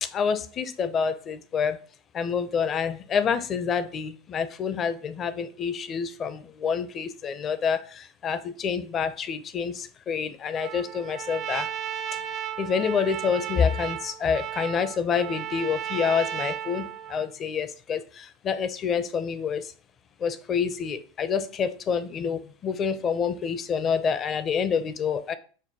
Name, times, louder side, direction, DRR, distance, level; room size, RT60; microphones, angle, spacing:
voice 1, 0.1-1.8 2.1-7.8 8.2-11.6 12.6-18.0 18.4-19.6 20.2-25.3, left 6 dB, 35° left, 12 dB, 0.5 m, -27 dB
Trumpet, 10.5-17.3, right 10 dB, 40° right, 0.4 m, -34 dB
6.3 x 2.2 x 2.8 m, 0.40 s
supercardioid pair, 115°, 0 cm